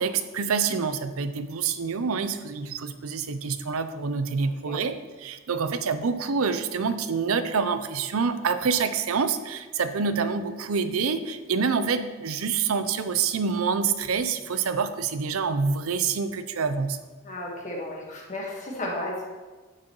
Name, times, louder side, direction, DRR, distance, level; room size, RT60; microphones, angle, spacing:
voice 1, 0.0-17.0, right 5 dB, 85° right, 11 dB, 0.6 m, -27 dB
voice 2, 17.2-19.2, left 1 dB, 35° left, -2 dB, 1.5 m, -33 dB
9.6 x 7.5 x 3.1 m, 1.3 s
head